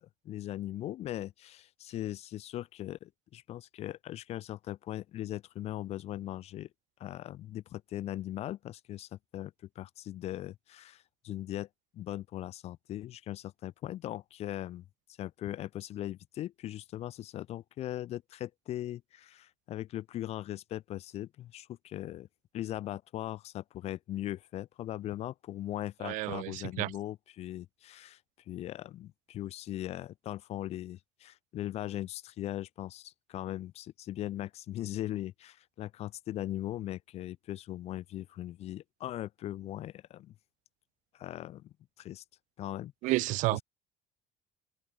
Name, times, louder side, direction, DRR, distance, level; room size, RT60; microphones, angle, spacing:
voice 1, 0.0-6.7 7.0-11.7 11.9-14.8 15.2-22.3 22.5-28.2 28.5-40.3 41.1-42.2 42.6-43.1, left 13 dB, 45° left, 4.1 m, -39 dB
voice 2, 26.0-26.9 43.0-43.6, right 20 dB, 60° right, 0.8 m, -30 dB
cardioid pair, 160°, 14 cm